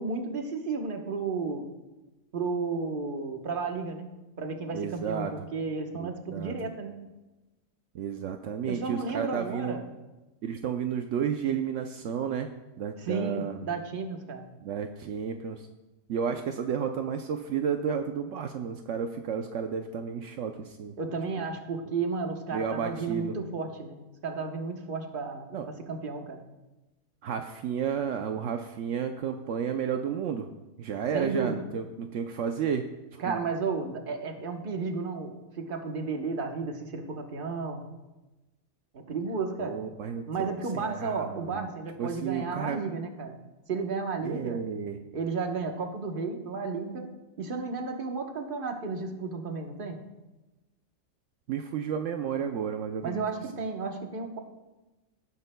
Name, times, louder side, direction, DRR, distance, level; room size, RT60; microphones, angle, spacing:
voice 1, 0.0-1.6 2.3-4.1 4.4-7.0 8.7-9.9 13.0-14.5 21.0-26.4 31.1-31.7 33.2-37.9 38.9-39.8 40.3-43.4 43.7-44.6 45.1-47.1 47.4-50.0 53.0-54.4, right 4 dB, 45° right, 4 dB, 1.2 m, -33 dB
voice 2, 4.7-5.3 5.9-6.5 7.9-9.8 10.4-12.5 12.8-13.6 14.6-15.7 16.1-21.0 21.4-21.5 22.5-23.3 25.5-25.7 27.2-30.5 30.8-32.9 33.3-33.4 39.6-41.7 42.0-42.8 44.2-45.0 51.5-53.2, right 7 dB, 75° right, 5 dB, 0.9 m, -32 dB
18.0 x 9.7 x 2.2 m, 1.1 s
omnidirectional pair, 1.3 m